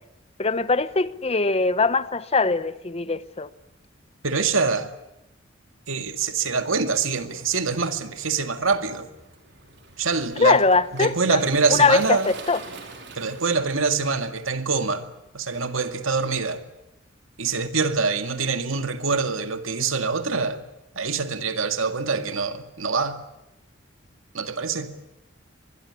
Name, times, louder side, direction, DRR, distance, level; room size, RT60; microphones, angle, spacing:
voice 1, 0.4-3.5 10.4-11.4 11.7-12.6, left 3 dB, 30° left, 0.9 m, -21 dB
voice 2, 4.2-4.9 5.9-9.1 10.0-10.6 10.9-12.3 13.2-15.1 15.3-16.6 17.4-20.6 21.0-23.2 24.3-24.9, right 4 dB, 90° right, 2.2 m, -25 dB
Waves surf, 7.0-13.6, right 3 dB, 60° right, 5.0 m, -44 dB
24.5 x 22.0 x 9.9 m
head